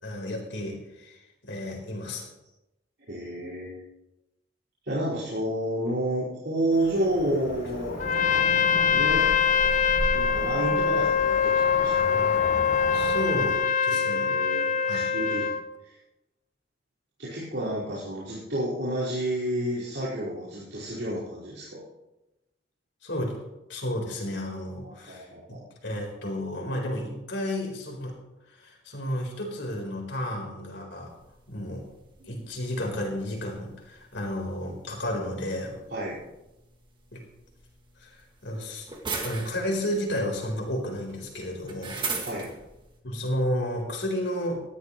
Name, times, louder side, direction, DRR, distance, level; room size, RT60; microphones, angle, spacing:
voice 1, 0.0-2.3 12.9-14.3 14.9-15.1 23.0-23.4 23.7-28.2 28.5-31.1 31.5-31.8 32.2-35.8 37.1-37.2 38.0-38.9 39.2-42.0 43.0-44.6, left 1 dB, 85° left, 0 dB, 4.2 m, -32 dB
voice 2, 3.1-3.8 4.8-8.0 8.9-9.3 10.1-12.0 13.9-15.5 15.8-16.0 17.2-21.8 24.8-25.6 35.9-36.2 42.1-42.5, right 1 dB, 80° right, -11 dB, 4.9 m, -30 dB
Cricket / Motor vehicle (road), 6.7-13.6, equal, 65° left, 3.9 m, -35 dB
Trumpet, 8.0-15.7, left 7 dB, 45° left, 0.6 m, -24 dB
sound 1, 31.1-43.0, right 4 dB, 25° right, 2.0 m, -41 dB
19.5 x 13.5 x 3.1 m, 0.94 s
head